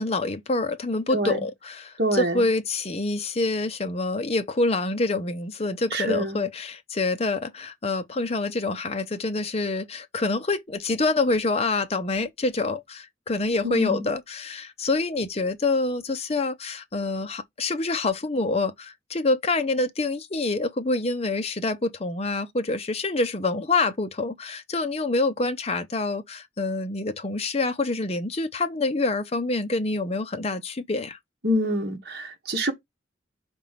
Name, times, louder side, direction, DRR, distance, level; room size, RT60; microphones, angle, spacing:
voice 1, 0.0-31.2, left 3 dB, 35° left, 0.7 m, -26 dB
voice 2, 2.0-2.4 5.9-6.4 13.6-14.1 31.4-32.7, equal, 55° right, 1.4 m, -26 dB
5.2 x 3.5 x 5.7 m
head